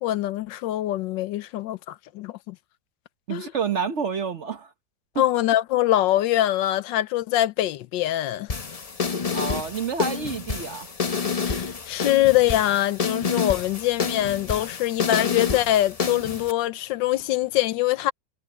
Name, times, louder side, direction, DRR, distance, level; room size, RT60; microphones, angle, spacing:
voice 1, 0.0-2.6 3.3-3.5 5.2-8.5 11.4-18.1, left 14 dB, 80° left, 1.4 m, -23 dB
voice 2, 3.3-4.7 9.3-10.9, right 6 dB, 50° right, 1.0 m, -29 dB
sound 1, 8.5-16.5, left 5 dB, 40° left, 0.5 m, -29 dB
omnidirectional pair, 2.0 m